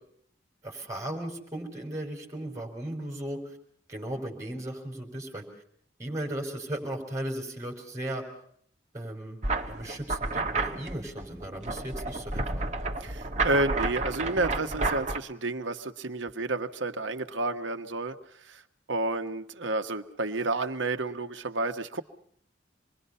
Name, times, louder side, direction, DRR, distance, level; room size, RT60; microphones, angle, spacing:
voice 1, 0.6-3.4 3.9-5.4 6.0-8.2 8.9-9.4 9.7-12.7, right 1 dB, 15° right, 1 dB, 5.2 m, -36 dB
sound 1, 9.4-15.2, right 3 dB, 40° right, 1.7 m, -31 dB
voice 2, 13.0-18.2 18.4-18.6 18.9-22.0, right 2 dB, 80° right, 7 dB, 1.4 m, -30 dB
27.0 x 22.0 x 5.6 m, 0.64 s
head